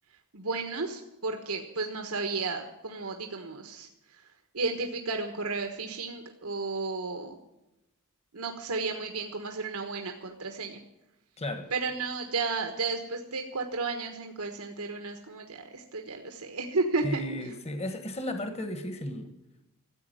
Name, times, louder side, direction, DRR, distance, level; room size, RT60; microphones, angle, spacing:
voice 1, 0.3-3.9 4.5-7.4 8.3-10.8 11.7-17.5, right 3 dB, 80° right, 4 dB, 1.4 m, -33 dB
voice 2, 17.0-19.3, left 1 dB, 30° left, 8 dB, 1.3 m, -34 dB
14.5 x 8.3 x 9.9 m, 0.92 s
head